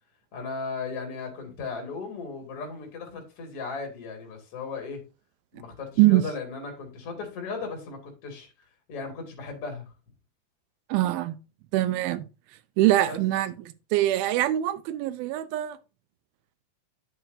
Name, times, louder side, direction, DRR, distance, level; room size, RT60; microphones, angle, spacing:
voice 1, 0.3-5.0 5.5-8.5 8.9-9.9 13.1-13.2, left 4 dB, 45° left, 2.9 m, -36 dB
voice 2, 10.9-11.4 11.7-12.3 12.8-15.8, right 15 dB, 85° right, 2.5 m, -23 dB
9.4 x 8.0 x 2.6 m
omnidirectional pair, 4.3 m